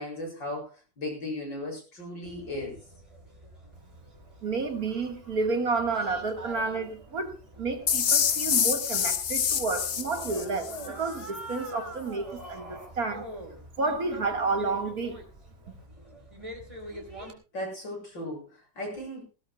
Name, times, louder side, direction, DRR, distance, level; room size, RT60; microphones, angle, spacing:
voice 1, 0.0-2.8 17.5-19.2, left 1 dB, 80° left, 1 dB, 8.4 m, -36 dB
sound 1, 2.2-17.3, right 1 dB, 15° right, 4.1 m, -45 dB
voice 2, 4.4-13.3 13.8-15.2, right 3 dB, 55° right, 5 dB, 2.3 m, -30 dB
sound 2, 7.9-10.9, left 8 dB, 50° left, 0.8 m, -26 dB
20.0 x 17.5 x 2.4 m, 0.33 s
omnidirectional pair, 1.9 m